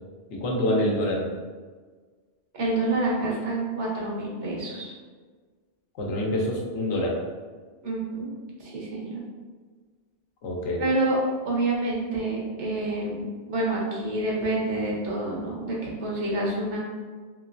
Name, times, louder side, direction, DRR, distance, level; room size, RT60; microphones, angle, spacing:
voice 1, 0.3-1.3 6.0-7.2 10.4-10.8, left 1 dB, 85° left, -1 dB, 1.0 m, -26 dB
voice 2, 2.5-4.9 7.8-8.3 8.6-9.2 10.8-11.2 11.4-16.8, right 2 dB, 90° right, -4 dB, 1.2 m, -28 dB
3.5 x 3.0 x 2.5 m, 1.5 s
omnidirectional pair, 1.2 m